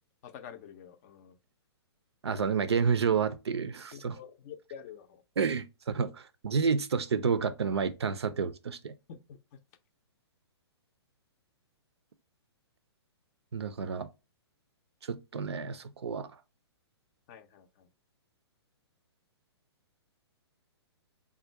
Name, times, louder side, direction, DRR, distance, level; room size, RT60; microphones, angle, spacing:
voice 1, 0.2-1.4 3.9-5.2 9.1-9.4 17.3-17.9, left 8 dB, 35° left, 0.5 m, -48 dB
voice 2, 2.2-4.2 5.4-8.9 13.5-14.1 15.0-16.3, right 6 dB, 75° right, 0.5 m, -30 dB
3.6 x 2.2 x 4.4 m
figure-of-eight pair, 120°, 14 cm